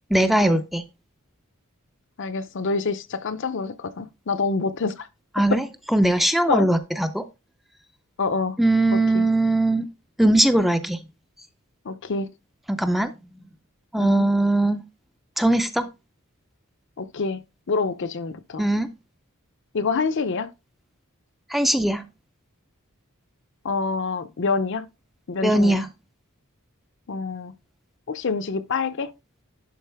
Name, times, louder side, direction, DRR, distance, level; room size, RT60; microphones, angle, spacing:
voice 1, 0.1-0.8 5.4-7.2 8.6-9.9 10.2-11.0 12.7-13.1 13.9-14.8 15.4-15.9 18.6-18.9 21.5-22.0 25.4-25.9, right 1 dB, ahead, 0.4 m, -20 dB
voice 2, 2.2-5.1 5.5-5.6 6.5-6.7 8.2-8.6 8.9-9.2 11.8-12.3 14.0-14.3 17.0-17.4 17.7-18.7 19.7-20.5 23.6-24.9 25.3-25.8 27.1-27.5 28.1-29.1, left 4 dB, 55° left, 0.6 m, -26 dB
11.0 x 4.0 x 3.4 m
head